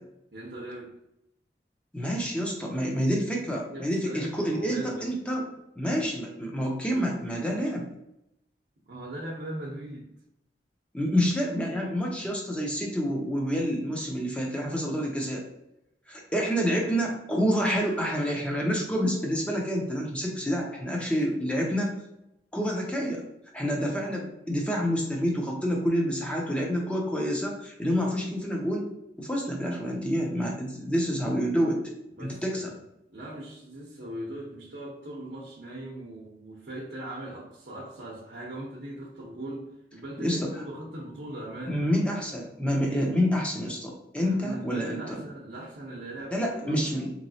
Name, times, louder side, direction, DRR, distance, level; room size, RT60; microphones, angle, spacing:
voice 1, 0.3-0.9 3.7-5.1 8.9-10.1 31.2-31.3 32.1-32.7 33.1-41.8 44.2-46.8, right 1 dB, 75° right, -4 dB, 0.8 m, -39 dB
voice 2, 1.9-5.4 5.8-7.9 10.9-15.4 16.1-22.0 22.5-23.2 23.5-28.9 29.2-31.8 32.2-32.7 40.2-40.5 41.7-45.2 46.3-47.1, equal, 5° left, -1 dB, 0.6 m, -28 dB
3.9 x 3.0 x 2.7 m, 0.84 s
head